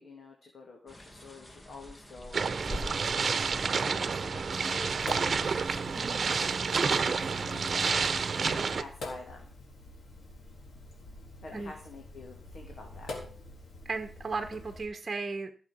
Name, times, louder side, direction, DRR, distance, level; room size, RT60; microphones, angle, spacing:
voice 1, 0.0-3.4 3.7-5.5 6.7-9.5 11.4-13.2, left 3 dB, 60° left, 1 dB, 2.9 m, -47 dB
sound 1, 0.9-6.1, equal, 25° left, 2.3 m, -45 dB
sound 2, 2.3-8.8, right 5 dB, 50° right, 1.0 m, -29 dB
Sink (filling or washing), 4.9-14.8, left 2 dB, 80° left, 3.9 m, -46 dB
voice 2, 5.9-6.4 11.5-11.7 13.8-15.5, right 4 dB, 30° right, 6 dB, 1.3 m, -36 dB
15.5 x 7.6 x 5.5 m, 0.42 s
wide cardioid pair, 110°, 0 cm